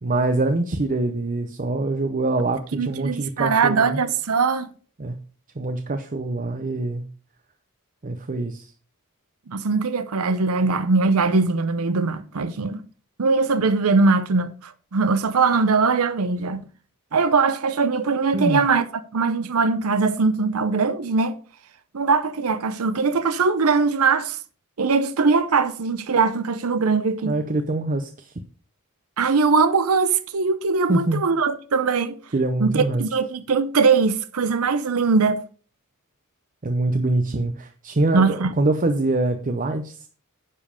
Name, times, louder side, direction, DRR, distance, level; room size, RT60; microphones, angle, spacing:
voice 1, 0.0-4.0 5.0-5.1 5.6-7.0 8.0-8.7 18.3-18.6 27.2-28.3 30.9-31.2 32.3-33.1 36.6-40.1, right 2 dB, 35° right, 0.7 m, -24 dB
voice 2, 2.7-4.7 9.5-12.8 13.2-16.6 17.1-21.4 21.9-24.4 24.8-27.3 29.2-32.2 32.6-35.4 38.1-38.5, right 4 dB, 75° right, 0.6 m, -21 dB
9.9 x 5.3 x 5.1 m
head